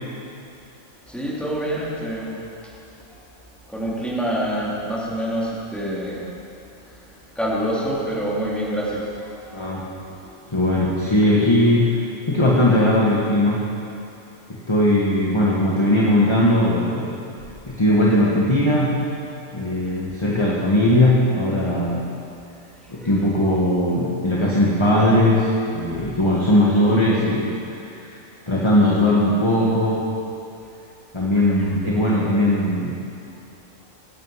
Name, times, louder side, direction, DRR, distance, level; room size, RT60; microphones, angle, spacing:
voice 1, 1.1-2.4 3.7-6.2 7.4-9.1 9.4-9.6 22.9-23.1, right 1 dB, ahead, -7 dB, 2.9 m, -26 dB
voice 2, 9.5-9.8 10.5-12.0 12.3-13.6 14.5-17.2 17.7-19.0 19.5-22.1 22.9-27.6 27.8-28.2 28.5-30.0 31.1-32.9, left 1 dB, 20° left, -5 dB, 1.5 m, -19 dB
17.5 x 9.1 x 5.7 m, 2.6 s
omnidirectional pair, 1.4 m